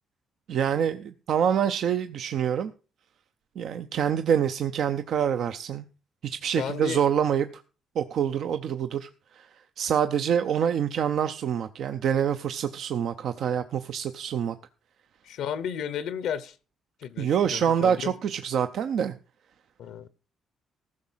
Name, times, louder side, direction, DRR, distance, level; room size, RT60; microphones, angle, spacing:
voice 1, 0.5-2.7 3.6-5.8 6.2-7.6 8.0-9.5 9.8-14.6 17.2-19.1, right 8 dB, 70° right, 0.6 m, -26 dB
voice 2, 6.6-7.0 15.2-16.6 17.0-18.1 19.8-20.1, left 8 dB, 85° left, 0.8 m, -33 dB
14.5 x 6.2 x 5.6 m
cardioid pair, 90°, 0 cm